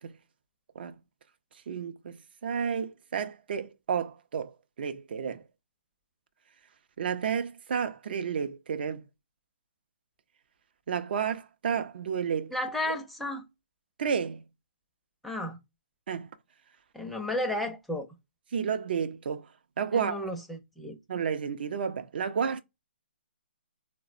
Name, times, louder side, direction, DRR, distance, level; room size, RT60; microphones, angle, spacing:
voice 1, 1.7-5.4 7.0-9.0 10.9-12.5 14.0-14.4 16.1-16.3 18.5-19.5 19.8-20.2 21.1-22.6, right 7 dB, 60° right, 0.5 m, -31 dB
voice 2, 12.5-13.5 15.2-15.6 16.9-18.1 19.9-21.0, left 1 dB, ahead, 0.5 m, -33 dB
4.1 x 2.1 x 2.5 m
hypercardioid pair, 140°, 6 cm